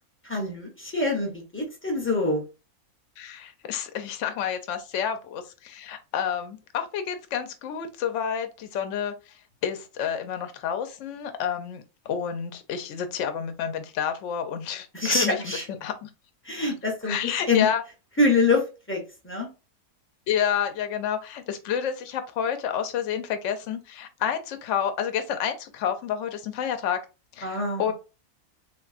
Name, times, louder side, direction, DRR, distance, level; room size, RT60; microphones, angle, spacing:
voice 1, 0.2-2.4 14.9-15.6 16.4-17.7 18.2-19.5 27.4-27.9, left 3 dB, 15° left, 0.5 m, -25 dB
voice 2, 3.2-9.1 9.6-16.1 17.1-17.8 20.3-27.0 27.4-27.9, left 8 dB, 65° left, 0.8 m, -29 dB
3.5 x 2.2 x 2.4 m
omnidirectional pair, 1.5 m